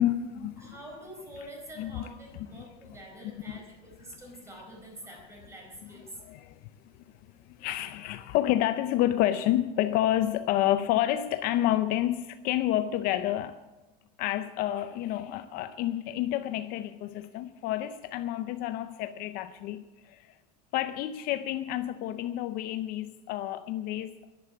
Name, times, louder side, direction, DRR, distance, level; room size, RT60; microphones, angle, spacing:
voice 1, 0.0-0.7 1.8-2.1 2.5-2.7 3.5-3.6 6.2-6.9 7.3-13.6 14.2-20.4 20.7-24.1, left 13 dB, 45° left, 0.6 m, -29 dB
voice 2, 0.6-6.2, right 1 dB, 15° right, 4.5 m, -46 dB
12.0 x 11.0 x 8.4 m
cardioid pair, 165°, 21 cm